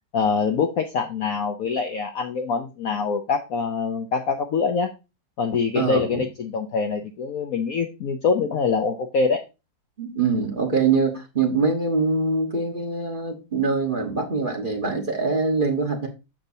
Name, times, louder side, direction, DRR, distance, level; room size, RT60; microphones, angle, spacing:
voice 1, 0.1-4.9 5.4-9.4, left 5 dB, 90° left, 5 dB, 0.7 m, -24 dB
voice 2, 5.7-6.2 10.0-16.1, right 4 dB, 30° right, 0 dB, 1.1 m, -23 dB
7.2 x 6.7 x 2.7 m, 0.28 s
omnidirectional pair, 2.3 m